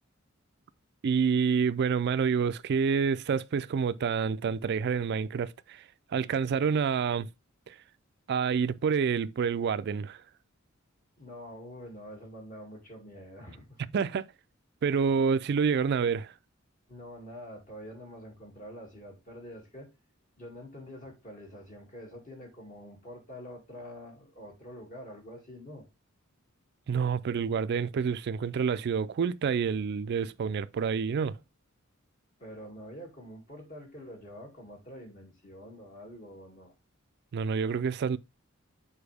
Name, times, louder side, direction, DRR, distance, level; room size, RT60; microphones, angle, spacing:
voice 1, 1.0-5.8 6.1-7.3 7.7-7.8 8.3-10.2 13.9-14.3 14.8-16.3 26.9-31.4 37.3-38.2, right 6 dB, 55° right, 0.3 m, -28 dB
voice 2, 11.2-13.8 16.9-19.9 20.4-25.9 32.4-36.7, equal, 40° left, 2.3 m, -46 dB
7.0 x 4.3 x 3.4 m
head